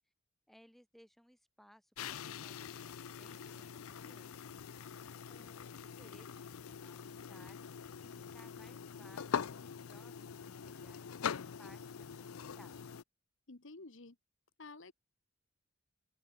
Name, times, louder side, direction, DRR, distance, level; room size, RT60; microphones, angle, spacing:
voice 1, 0.5-4.4 5.3-6.3 6.7-7.6 8.0-12.8, equal, ahead, 3.7 m, -63 dB
sound 1, 2.0-13.0, left 7 dB, 80° left, 0.5 m, -43 dB
voice 2, 13.5-14.2 14.6-14.9, left 3 dB, 60° left, 1.2 m, -51 dB
open air
head